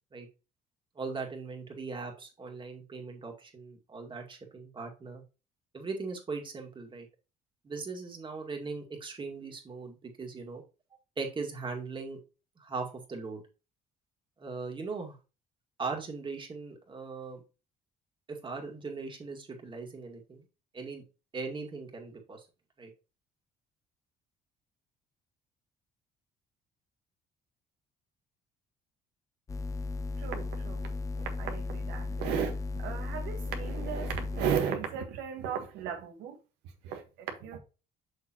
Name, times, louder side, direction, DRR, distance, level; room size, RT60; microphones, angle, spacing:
voice 1, 1.0-5.2 5.7-7.1 7.6-10.6 11.2-12.2 12.6-13.4 14.4-15.2 15.8-17.4 18.3-20.4 20.7-21.0 21.3-22.4 22.8-22.9, right 4 dB, 30° right, 2.2 m, -39 dB
sound 1, 29.5-34.6, left 3 dB, 20° left, 0.4 m, -35 dB
voice 2, 30.2-30.9 31.2-36.4 36.8-37.6, right 8 dB, 90° right, 1.6 m, -35 dB
6.9 x 6.2 x 3.0 m
cardioid pair, 110°, 17 cm